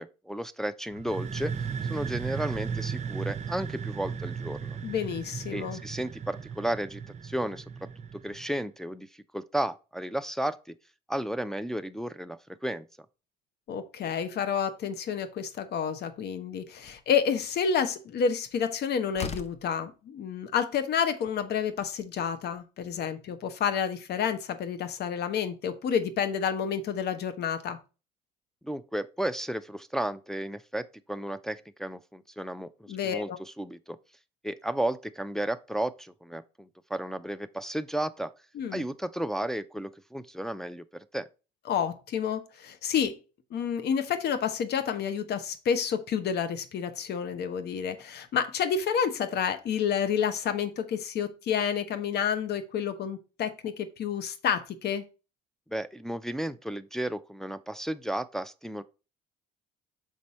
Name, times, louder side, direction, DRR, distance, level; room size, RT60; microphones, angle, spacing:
voice 1, 0.0-1.5 1.8-4.8 5.5-7.6 8.1-10.8 11.1-12.9 28.6-34.0 34.4-38.3 38.7-41.3 55.7-58.8, right 1 dB, ahead, 0.4 m, -33 dB
sound 1, 0.9-8.6, right 6 dB, 35° right, 0.7 m, -36 dB
voice 2, 4.8-5.8 13.7-27.8 32.9-33.4 38.5-38.8 41.7-43.2 43.5-55.0, left 7 dB, 55° left, 1.0 m, -29 dB
Slam, 16.1-16.2 16.8-17.1 18.6-18.7 19.1-19.7, left 6 dB, 30° left, 0.7 m, -37 dB
6.1 x 4.1 x 4.3 m
supercardioid pair, 75°, 20 cm